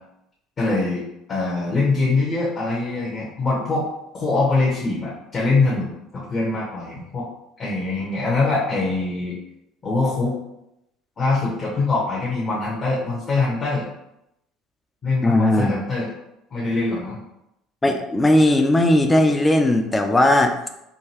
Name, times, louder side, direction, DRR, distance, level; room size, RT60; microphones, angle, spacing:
voice 1, 0.6-1.0 1.3-3.9 4.1-7.3 7.6-9.4 9.8-10.4 11.2-13.9 15.0-16.1 16.5-17.2, left 3 dB, 40° left, -6 dB, 1.1 m, -23 dB
voice 2, 15.2-15.8 17.8-20.7, left 1 dB, 20° left, 5 dB, 0.5 m, -17 dB
3.8 x 2.5 x 2.9 m, 0.85 s
hypercardioid pair, 65°, 0 cm